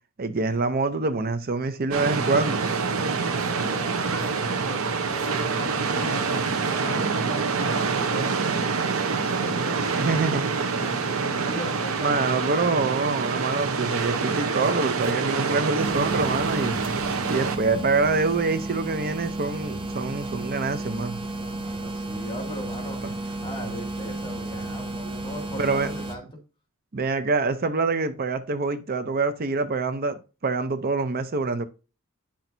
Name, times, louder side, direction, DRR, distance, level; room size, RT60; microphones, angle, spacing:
voice 1, 0.2-2.6 10.0-10.4 12.0-16.8 17.2-21.2 23.0-23.1 25.6-25.9 26.9-31.6, right 3 dB, 45° right, 0.6 m, -25 dB
sound 1, 1.9-17.6, right 4 dB, 70° right, 0.9 m, -26 dB
voice 2, 2.9-8.8 9.4-10.3 10.8-12.8 21.3-26.4, equal, 25° left, 2.3 m, -39 dB
sound 2, 15.8-26.2, right 2 dB, 25° right, 1.0 m, -33 dB
9.9 x 6.0 x 2.7 m
head